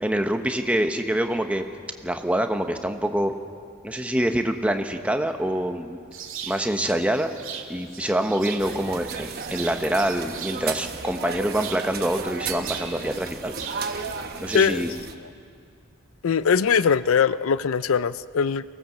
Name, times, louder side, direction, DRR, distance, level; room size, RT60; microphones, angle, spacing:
voice 1, 0.0-1.6 2.0-3.3 3.8-6.0 6.5-7.3 7.7-13.5 14.4-14.9, right 1 dB, 5° right, 6 dB, 0.9 m, -25 dB
sound 1, 6.1-14.7, right 7 dB, 65° right, 2.2 m, -40 dB
sound 2, 8.6-15.1, right 5 dB, 45° right, 1.1 m, -34 dB
voice 2, 14.5-14.9 16.2-18.6, left 6 dB, 75° left, 16 dB, 0.4 m, -21 dB
24.0 x 18.5 x 7.3 m, 2.4 s
head